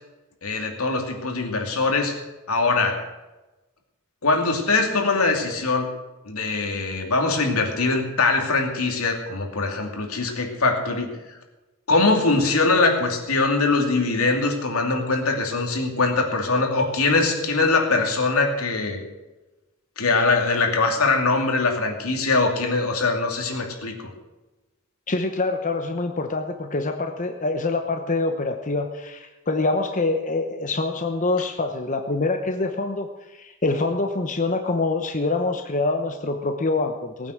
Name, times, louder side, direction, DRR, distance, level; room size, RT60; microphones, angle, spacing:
voice 1, 0.4-2.2 2.5-3.0 4.2-5.9 6.3-11.2 11.9-19.0 20.0-24.0, left 3 dB, 80° left, 2 dB, 2.7 m, -22 dB
voice 2, 25.1-37.3, left 3 dB, 35° left, 5 dB, 0.9 m, -25 dB
19.0 x 9.2 x 6.5 m, 1.1 s
head